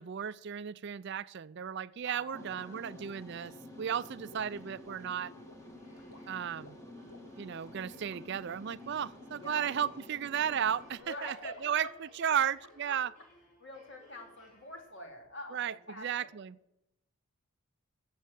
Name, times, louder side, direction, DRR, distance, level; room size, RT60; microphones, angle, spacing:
voice 1, 0.0-5.3 6.3-6.8 7.4-11.3 11.6-11.9 12.2-13.1 15.5-16.6, right 8 dB, 50° right, 17 dB, 0.4 m, -34 dB
sound 1, 2.0-11.9, left 1 dB, 80° left, 2.9 m, -59 dB
voice 2, 2.0-3.1 9.4-9.7 11.0-11.9 12.3-12.4 12.9-13.0 13.6-16.3, left 1 dB, 50° left, 3 dB, 2.9 m, -46 dB
sound 2, 2.3-11.0, left 1 dB, 15° left, 1.6 m, -50 dB
sound 3, 4.9-15.3, left 1 dB, 35° left, 5.7 m, -63 dB
14.5 x 7.6 x 7.0 m, 0.86 s
head